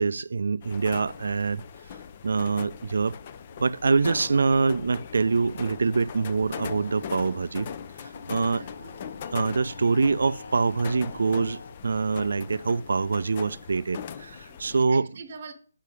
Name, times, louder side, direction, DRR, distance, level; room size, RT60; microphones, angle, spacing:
voice 1, 0.0-1.6 2.2-3.2 3.6-7.7 8.0-8.6 9.3-15.1, right 4 dB, 65° right, 0.4 m, -25 dB
sound 1, 0.6-14.9, left 8 dB, 35° left, 0.5 m, -41 dB
sound 2, 3.2-13.2, left 3 dB, 70° left, 0.7 m, -47 dB
voice 2, 8.4-9.1 14.4-15.5, right 5 dB, 45° right, 0.9 m, -45 dB
8.2 x 5.5 x 4.9 m
figure-of-eight pair, 145°, 0 cm